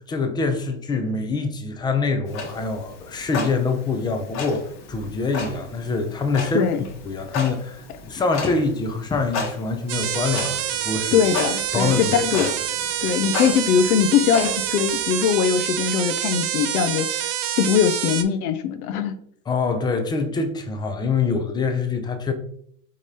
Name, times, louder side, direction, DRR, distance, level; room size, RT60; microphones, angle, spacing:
voice 1, 0.1-6.7 7.0-11.2 11.7-12.5 19.5-22.3, left 4 dB, 10° left, 0.3 m, -25 dB
Clock, 2.3-15.0, left 4 dB, 45° left, 1.2 m, -34 dB
voice 2, 6.5-6.8 11.1-12.5 13.0-19.1, left 8 dB, 90° left, 0.6 m, -21 dB
sound 1, 9.9-18.2, right 11 dB, 45° right, 0.5 m, -27 dB
4.8 x 3.7 x 2.7 m
supercardioid pair, 120°, 42 cm